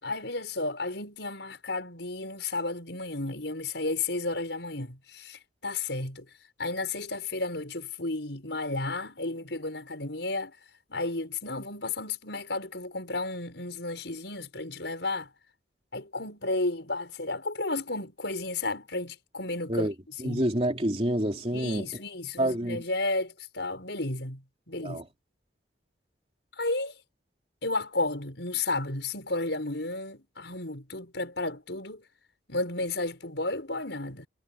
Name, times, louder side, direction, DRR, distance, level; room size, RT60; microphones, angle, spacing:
voice 1, 0.0-6.3 6.6-10.6 10.9-15.3 15.9-19.9 20.2-20.4 21.5-25.0 26.6-26.9 27.6-32.0 32.5-34.3, left 2 dB, 70° left, 5.6 m, -33 dB
voice 2, 20.2-21.8 22.4-22.8 24.8-25.0, right 1 dB, 30° right, 3.2 m, -27 dB
head